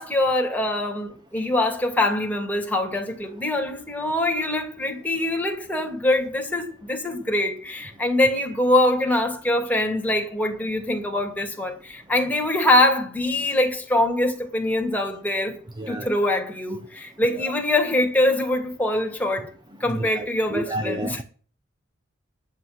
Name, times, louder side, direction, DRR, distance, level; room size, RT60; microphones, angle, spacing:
voice 1, 0.0-15.6 15.9-19.5 19.8-21.2, left 1 dB, 10° left, 2.8 m, -23 dB
voice 2, 15.8-16.1 17.3-17.4 19.9-21.2, right 1 dB, 20° right, 0.9 m, -31 dB
10.5 x 7.5 x 9.7 m
head